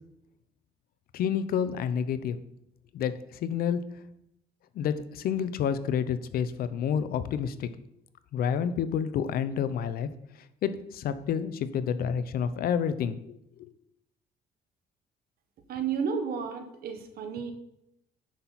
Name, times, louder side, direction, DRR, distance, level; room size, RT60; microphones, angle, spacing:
voice 1, 1.1-2.4 2.9-4.0 4.7-7.7 8.3-10.1 10.6-13.7, left 8 dB, 60° left, 12 dB, 0.7 m, -29 dB
voice 2, 15.7-17.5, right 6 dB, 65° right, 8 dB, 1.3 m, -32 dB
10.0 x 5.9 x 4.2 m, 0.81 s
cardioid pair, 110°, 17 cm